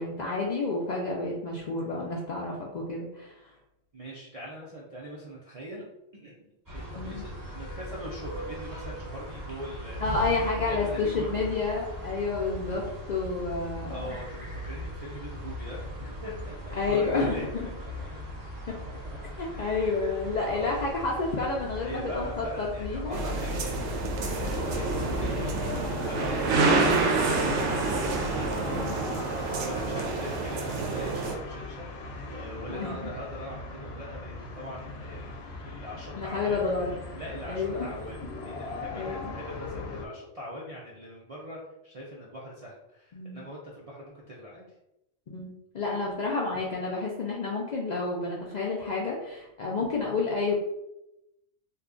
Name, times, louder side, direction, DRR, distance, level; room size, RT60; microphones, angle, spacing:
voice 1, 0.0-3.5 7.0-7.2 10.0-14.0 16.8-17.7 19.4-23.2 26.5-26.6 28.7-28.9 32.7-33.0 36.1-36.9 37.5-37.9 38.9-39.4 43.1-43.4 45.3-45.5 45.7-50.5, left 3 dB, 80° left, -3 dB, 0.4 m, -30 dB
voice 2, 3.9-5.8 6.2-6.4 6.7-11.4 13.9-18.3 18.7-19.2 19.5-20.1 20.4-20.8 21.8-23.9 24.2-35.4 35.6-36.7 37.1-44.7, equal, 65° right, -5 dB, 0.3 m, -42 dB
sound 1, 6.7-25.8, equal, 20° right, 0.6 m, -39 dB
sound 2, 23.1-31.3, right 3 dB, 80° right, 0.9 m, -28 dB
sound 3, 24.6-40.1, left 3 dB, 60° left, 0.7 m, -38 dB
2.7 x 2.3 x 3.6 m, 0.88 s
omnidirectional pair, 1.3 m